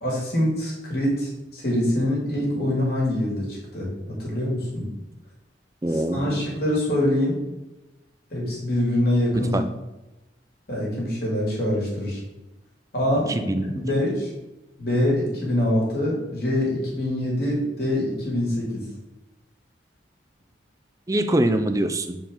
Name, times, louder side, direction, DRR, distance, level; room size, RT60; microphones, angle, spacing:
voice 1, 0.0-4.8 5.9-7.4 8.3-9.6 10.7-12.2 12.9-13.4 13.6-14.3 14.8-18.8, left 1 dB, 55° left, -4 dB, 2.4 m, -24 dB
voice 2, 5.8-6.4 9.5-9.7 13.3-13.7 21.1-22.2, right 1 dB, 20° right, 8 dB, 0.4 m, -23 dB
6.9 x 4.8 x 3.7 m, 0.99 s
head